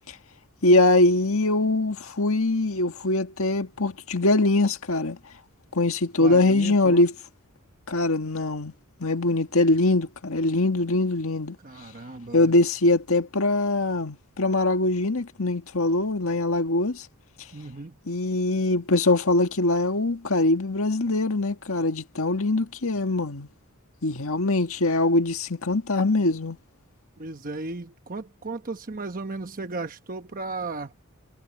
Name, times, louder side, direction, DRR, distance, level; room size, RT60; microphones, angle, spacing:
voice 1, 0.6-5.2 5.7-7.1 7.9-8.7 9.0-11.6 12.3-17.1 18.1-23.5 24.0-26.6, left 2 dB, 70° left, 1.8 m, -22 dB
voice 2, 6.2-7.0 11.6-12.5 17.5-18.0 27.2-30.9, right 3 dB, 40° right, 1.0 m, -35 dB
head